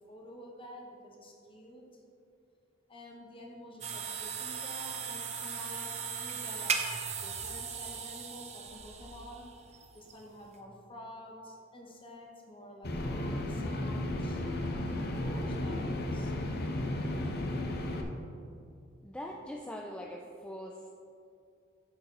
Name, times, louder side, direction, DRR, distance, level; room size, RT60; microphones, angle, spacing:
voice 1, 0.1-2.0 2.9-6.8 7.2-9.4 9.9-14.4 15.2-16.3, left 1 dB, 25° left, 0 dB, 1.3 m, -49 dB
sound 1, 3.8-10.6, right 6 dB, 35° right, 0.7 m, -38 dB
sound 2, 12.8-18.0, left 1 dB, 55° left, 0.8 m, -34 dB
voice 2, 19.0-20.9, equal, 5° left, 0 dB, 0.4 m, -42 dB
8.8 x 6.9 x 4.1 m, 2.4 s
head